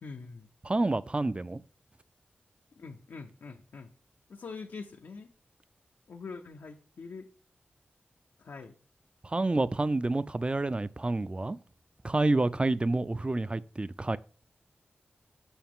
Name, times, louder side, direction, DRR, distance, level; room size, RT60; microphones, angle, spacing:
voice 1, 0.0-0.5 2.8-3.9 4.3-5.3 6.1-7.3 8.4-8.8, left 4 dB, 85° left, 0.6 m, -44 dB
voice 2, 0.6-1.6 9.2-11.6 12.0-14.2, right 2 dB, 25° right, 0.4 m, -28 dB
7.0 x 5.7 x 3.6 m
cardioid pair, 50°, 4 cm